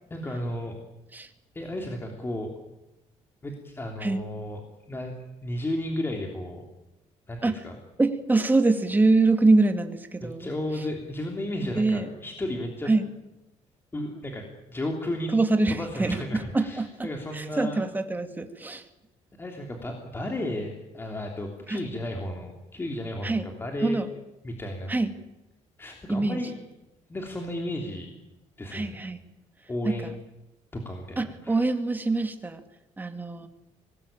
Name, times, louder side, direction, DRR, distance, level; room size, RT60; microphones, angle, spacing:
voice 1, 0.1-0.8 1.5-2.5 3.4-4.6 4.9-5.1 5.4-6.6 7.3-7.7 10.2-12.9 13.9-15.3 15.7-17.8 19.4-24.0 24.4-24.9 25.8-26.5 27.1-28.1 28.6-29.0 29.7-30.1 30.7-31.6, left 1 dB, 20° left, 2 dB, 3.3 m, -33 dB
voice 2, 8.0-10.8 11.8-12.2 12.9-13.1 15.3-18.9 21.7-21.8 23.2-23.5 23.8-24.1 24.9-25.1 26.1-26.4 28.7-29.2 29.8-30.1 31.2-32.6 33.0-33.5, right 3 dB, 15° right, 7 dB, 2.1 m, -25 dB
24.5 x 20.0 x 8.9 m, 0.97 s
cardioid pair, 130°, 12 cm